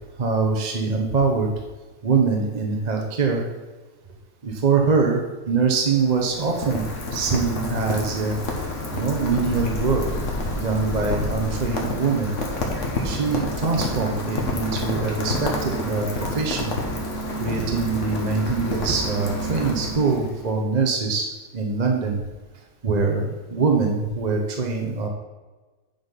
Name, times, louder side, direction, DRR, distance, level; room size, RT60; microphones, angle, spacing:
voice 1, 0.2-1.5 2.0-3.4 4.4-5.2 5.5-6.8 7.1-8.4 8.9-10.0 10.5-12.3 13.0-16.7 17.4-21.2 21.5-22.2 22.8-25.1, right 4 dB, 35° right, 2 dB, 1.0 m, -23 dB
Rain, 5.7-20.5, left 1 dB, 60° left, 1.8 m, -29 dB
9.0 x 5.5 x 5.7 m, 1.2 s
omnidirectional pair, 1.4 m